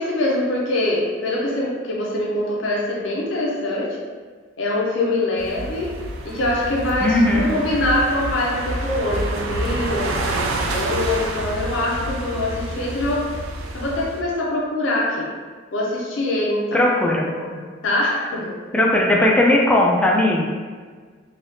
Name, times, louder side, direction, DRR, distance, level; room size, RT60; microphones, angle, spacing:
voice 1, 0.0-4.0 4.6-6.0 6.2-13.3 13.7-15.3 15.7-16.8 17.3-18.5, left 1 dB, 70° left, -4 dB, 0.5 m, -24 dB
sound 1, 5.4-14.2, right 2 dB, 85° right, 0.4 m, -28 dB
voice 2, 7.0-7.5 16.7-17.2 18.7-20.5, left 1 dB, 5° left, -2 dB, 0.3 m, -17 dB
3.3 x 2.3 x 2.6 m, 1.5 s
head